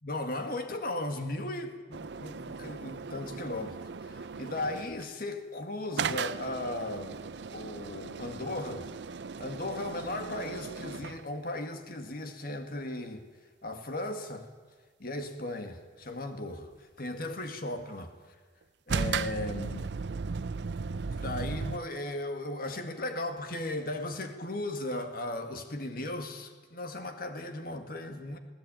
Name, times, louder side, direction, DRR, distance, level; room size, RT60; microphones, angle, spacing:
voice 1, 0.0-3.8 4.1-7.2 7.5-8.9 9.4-13.3 13.6-14.5 15.0-16.7 17.0-18.1 18.9-19.9 21.1-28.4, left 1 dB, 55° left, 2.0 m, -36 dB
sound 1, 1.9-5.1 6.0-11.2 18.9-21.8, right 5 dB, 70° right, 0.6 m, -36 dB
21.0 x 17.5 x 9.1 m
head